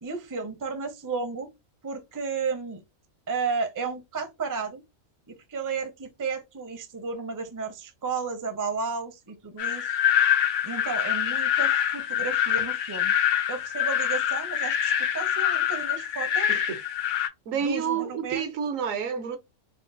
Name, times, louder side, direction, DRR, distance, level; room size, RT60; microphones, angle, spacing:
voice 1, 0.0-1.5 1.8-2.8 3.3-4.8 5.3-10.0 10.6-13.1 13.5-16.5 17.6-18.4, right 5 dB, 25° right, 0.4 m, -33 dB
sound 1, 9.6-17.3, left 10 dB, 70° left, 0.9 m, -25 dB
voice 2, 16.5-16.8 17.5-19.4, right 7 dB, 75° right, 1.1 m, -29 dB
3.6 x 2.2 x 2.5 m
omnidirectional pair, 1.4 m